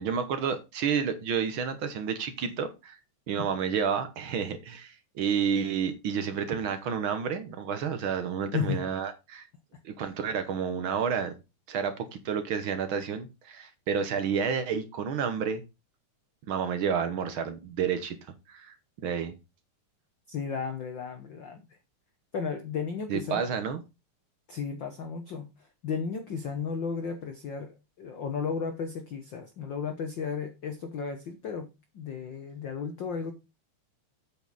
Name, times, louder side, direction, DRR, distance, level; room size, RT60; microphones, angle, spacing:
voice 1, 0.0-3.0 3.3-9.5 9.8-11.3 11.7-15.6 16.5-18.2 18.5-18.7 19.0-19.3 23.1-23.8, right 7 dB, 60° right, 9 dB, 1.3 m, -30 dB
voice 2, 20.3-21.6 22.3-23.5 24.5-25.5 25.8-33.3, left 6 dB, 85° left, 6 dB, 1.0 m, -34 dB
8.5 x 6.6 x 4.0 m, 0.26 s
omnidirectional pair, 3.6 m